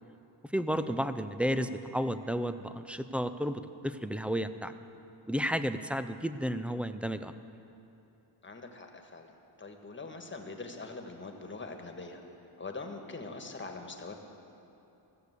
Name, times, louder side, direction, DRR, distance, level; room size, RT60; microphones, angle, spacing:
voice 1, 0.5-4.7 5.3-7.3, equal, 5° right, 11 dB, 0.4 m, -32 dB
voice 2, 8.4-12.2 12.6-14.2, left 3 dB, 25° left, 4 dB, 1.5 m, -43 dB
15.5 x 6.8 x 8.1 m, 2.8 s
cardioid pair, 75°, 46 cm